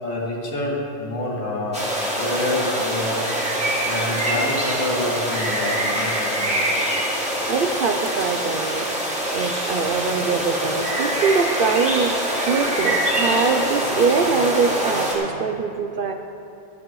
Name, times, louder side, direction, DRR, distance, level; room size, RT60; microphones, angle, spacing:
voice 1, 0.0-3.2 3.8-6.5, left 1 dB, 80° left, -5 dB, 2.5 m, -27 dB
sound 1, 1.7-15.2, right 1 dB, 5° right, 2.2 m, -24 dB
voice 2, 7.5-8.9 9.3-16.1, right 5 dB, 60° right, 5 dB, 0.5 m, -23 dB
13.5 x 12.0 x 3.1 m, 2.7 s
omnidirectional pair, 1.3 m